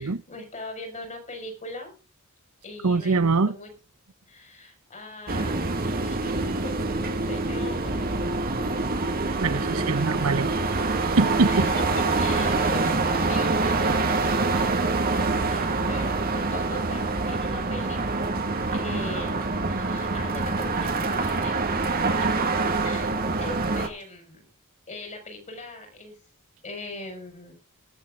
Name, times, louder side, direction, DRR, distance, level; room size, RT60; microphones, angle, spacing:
voice 1, 0.0-1.9 2.6-3.7 4.3-8.1 10.1-10.2 11.5-14.8 15.5-18.0 18.7-19.4 19.7-21.7 22.0-22.4 22.8-24.4 24.9-26.1 26.6-27.5, left 2 dB, 35° left, 5.0 m, -40 dB
voice 2, 2.8-3.5 9.4-10.5 11.0-11.7, right 4 dB, 75° right, 0.8 m, -23 dB
sound 1, 5.3-23.9, right 3 dB, 45° right, 1.8 m, -25 dB
22.0 x 7.3 x 3.7 m
head